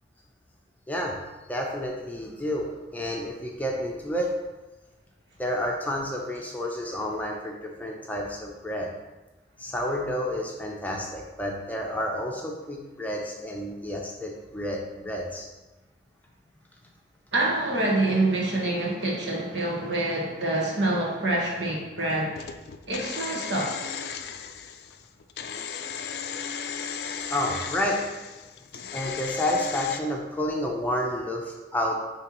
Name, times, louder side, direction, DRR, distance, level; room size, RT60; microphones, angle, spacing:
voice 1, 0.9-1.2 1.5-4.4 5.4-8.9 9.6-15.5 27.3-28.0 28.9-32.0, left 1 dB, 10° left, -1 dB, 0.6 m, -30 dB
voice 2, 17.3-22.5 22.9-23.8, right 2 dB, 80° right, -3 dB, 1.5 m, -26 dB
sound 1, 22.4-30.0, left 7 dB, 55° left, 0.3 m, -36 dB
9.7 x 3.4 x 3.0 m, 1.1 s
head